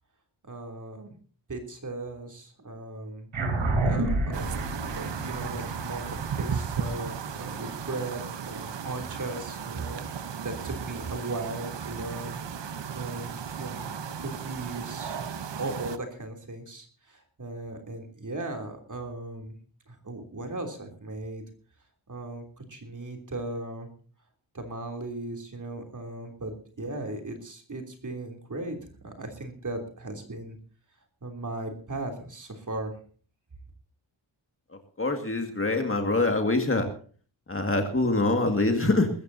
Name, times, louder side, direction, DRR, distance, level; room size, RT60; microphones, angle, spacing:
voice 1, 0.4-1.1 1.5-3.3 3.8-12.4 12.9-13.3 13.6-15.3 15.6-19.5 19.9-21.4 22.1-23.9 24.5-30.6 31.2-32.9, right 2 dB, 40° right, 3 dB, 3.2 m, -37 dB
sound 1, 3.3-8.1, right 2 dB, 80° right, 4.9 m, -30 dB
sound 2, 4.3-16.0, right 7 dB, 65° right, 1.1 m, -35 dB
voice 2, 35.0-36.9 37.5-39.1, left 2 dB, 25° left, 5 dB, 2.0 m, -24 dB
21.5 x 14.5 x 2.8 m, 0.42 s
wide cardioid pair, 170°, 47 cm